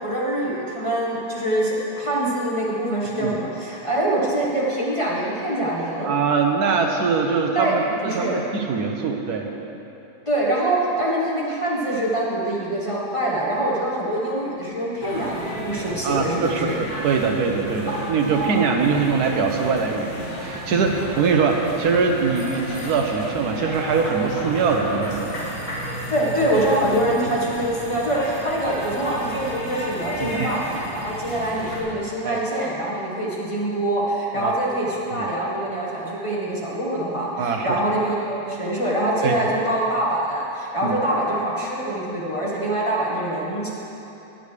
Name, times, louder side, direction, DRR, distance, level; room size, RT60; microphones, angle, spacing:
voice 1, 0.0-6.1 7.5-7.7 8.0-8.3 10.3-16.7 18.0-18.6 26.1-43.7, right 1 dB, 20° left, -6 dB, 1.3 m, -24 dB
voice 2, 6.0-9.5 16.0-25.3 30.2-30.5 32.2-32.4 34.4-34.5 35.1-35.3 37.4-37.8 39.2-39.5 40.8-41.0, right 5 dB, 75° right, 3 dB, 1.3 m, -22 dB
sound 1, 15.0-31.8, equal, 60° left, 2.4 m, -33 dB
19.5 x 6.8 x 3.3 m, 3.0 s
omnidirectional pair, 1.7 m